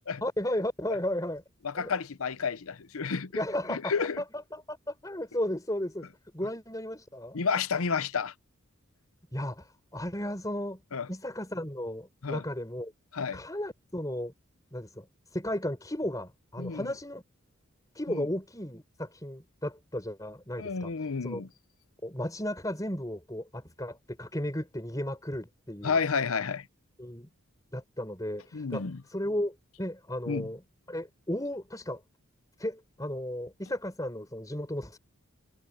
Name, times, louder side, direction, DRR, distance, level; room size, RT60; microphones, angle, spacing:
voice 1, 0.2-1.4 1.7-1.9 3.3-6.1 6.3-7.4 9.3-10.8 11.1-12.9 13.3-14.3 14.7-15.0 15.3-17.2 17.9-20.9 21.2-21.4 22.0-26.0 27.0-27.3 27.7-28.8 29.1-30.6 30.9-32.0 32.6-35.0, left 1 dB, 15° left, 4.8 m, -34 dB
voice 2, 1.6-3.3 3.7-4.2 7.3-8.3 10.9-11.1 12.2-12.4 13.1-13.4 16.6-16.9 18.1-18.3 20.6-21.5 25.8-26.6 28.5-29.0 30.3-30.5, left 5 dB, 75° left, 0.7 m, -30 dB
head